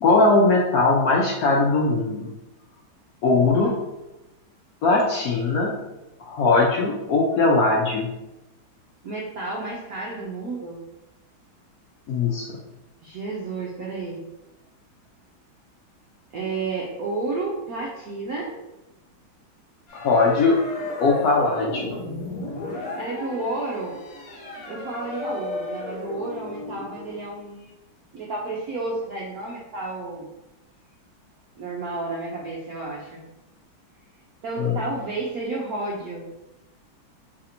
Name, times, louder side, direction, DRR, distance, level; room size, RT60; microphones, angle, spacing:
voice 1, 0.0-2.3 3.2-3.7 4.8-5.8 6.2-8.1 12.1-12.6 20.0-22.0 34.6-34.8, left 3 dB, 85° left, -2 dB, 0.8 m, -20 dB
voice 2, 9.0-10.8 13.0-14.2 16.3-18.6 22.6-24.0 24.7-27.7 28.1-30.3 31.6-33.3 34.4-36.3, right 3 dB, 75° right, -3 dB, 0.8 m, -31 dB
sound 1, 19.9-27.3, left 2 dB, 55° left, 1.1 m, -34 dB
3.3 x 2.6 x 4.2 m, 0.97 s
omnidirectional pair, 2.2 m